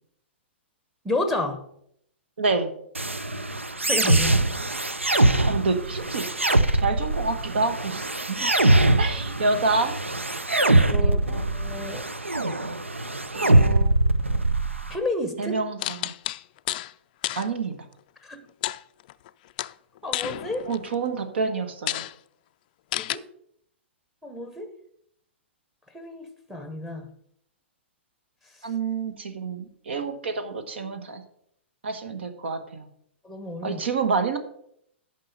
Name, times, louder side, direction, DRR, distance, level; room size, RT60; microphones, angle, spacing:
voice 1, 1.0-1.6 3.9-4.5 10.8-12.0 14.9-15.6 18.2-18.4 20.0-20.7 23.0-23.3 24.2-24.8 25.9-27.1 33.2-33.8, left 2 dB, 5° right, 9 dB, 0.9 m, -31 dB
voice 2, 2.4-2.7 5.5-6.2 6.8-8.5 9.0-9.9 11.0-11.4 13.3-13.9 15.4-16.1 17.3-17.7 20.7-22.0 28.6-31.2 31.8-32.9 33.6-34.4, right 4 dB, 65° right, 9 dB, 1.2 m, -28 dB
sound 1, 2.9-14.9, right 2 dB, 90° right, 0.5 m, -22 dB
sound 2, 15.8-16.9 17.2-17.5 18.6-19.3 19.6-20.9 21.4-21.5 21.9-22.1 22.9-23.2, left 15 dB, 45° left, 0.3 m, -30 dB
9.5 x 5.5 x 5.3 m, 0.71 s
figure-of-eight pair, 110°, 7 cm